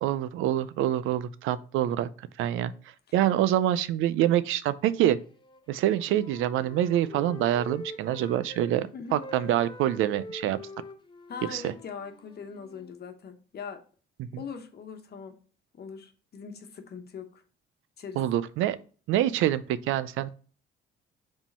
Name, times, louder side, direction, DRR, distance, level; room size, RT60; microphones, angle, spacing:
voice 1, 0.0-2.1 2.4-2.7 3.1-5.2 5.7-10.6 11.5-11.7 14.2-14.3 18.2-18.8 19.1-20.3, right 12 dB, 90° right, 0.5 m, -26 dB
Wind instrument woodwind instrument, 5.3-8.7 9.0-13.0, left 2 dB, 25° left, 0.8 m, -45 dB
voice 2, 11.3-13.8 14.3-15.4 15.7-17.4 18.0-18.2, left 6 dB, 55° left, 1.1 m, -41 dB
4.9 x 3.7 x 5.4 m
cardioid pair, 90°, 20 cm